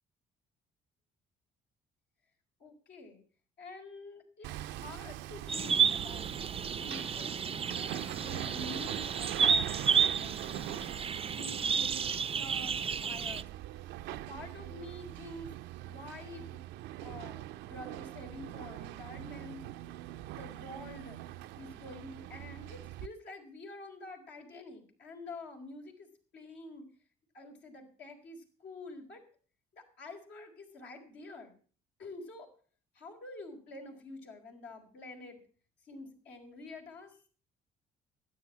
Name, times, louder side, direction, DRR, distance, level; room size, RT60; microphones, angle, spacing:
voice 1, 2.6-3.2 3.6-6.3 6.7-10.8 11.3-13.5 14.1-15.5 15.8-16.6 17.0-19.6 20.3-21.2 21.5-26.9 27.3-29.2 29.7-31.6 32.0-32.5 32.9-35.4 35.8-37.2, left 2 dB, 70° left, 1 dB, 4.5 m, -48 dB
Hammer, 4.4-23.1, right 14 dB, 75° right, 0.6 m, -43 dB
sound 1, 5.5-13.4, right 6 dB, 30° right, 0.5 m, -31 dB
13.0 x 9.7 x 7.3 m, 0.42 s
hypercardioid pair, 60°, 18 cm